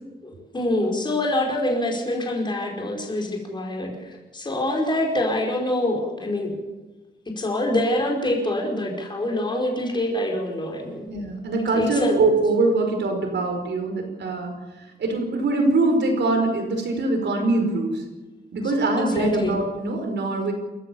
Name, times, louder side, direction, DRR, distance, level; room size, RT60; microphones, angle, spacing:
voice 1, 0.2-6.6 7.4-11.1 11.7-12.2 19.0-19.5, left 1 dB, 25° left, -1 dB, 5.0 m, -25 dB
voice 2, 11.1-14.5 15.0-18.0 18.5-20.5, right 2 dB, 75° right, 4 dB, 5.2 m, -23 dB
28.5 x 14.5 x 7.2 m, 1.2 s
wide cardioid pair, 175°, 18 cm